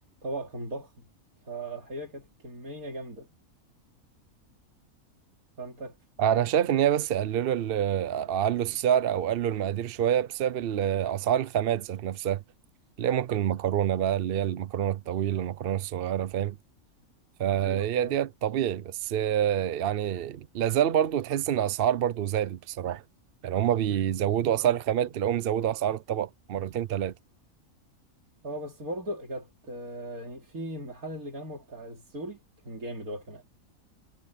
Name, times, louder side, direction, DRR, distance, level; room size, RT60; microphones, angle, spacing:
voice 1, 0.2-1.0 1.4-3.3 5.6-6.0 6.3-6.5 17.5-18.2 28.4-32.4 32.6-33.4, right 1 dB, 85° right, 3.9 m, -38 dB
voice 2, 6.2-12.4 13.0-16.6 17.4-23.0 23.4-27.1, right 10 dB, 60° right, 0.6 m, -27 dB
omnidirectional pair, 1.5 m